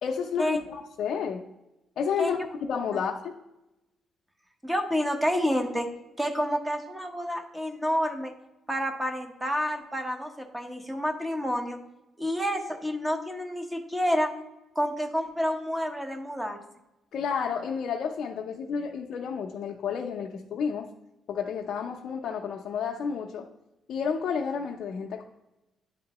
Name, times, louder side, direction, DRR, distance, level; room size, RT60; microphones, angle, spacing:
voice 1, 0.0-1.4 2.0-2.4 2.7-3.3 17.1-20.9 21.3-23.5 23.9-25.2, left 6 dB, 70° left, 0 dB, 0.5 m, -31 dB
voice 2, 4.6-5.9 6.2-8.3 8.7-11.8 12.2-14.3 14.7-16.6, equal, 10° right, 4 dB, 1.0 m, -29 dB
10.0 x 3.6 x 2.9 m, 0.94 s
cardioid pair, 90°, 0 cm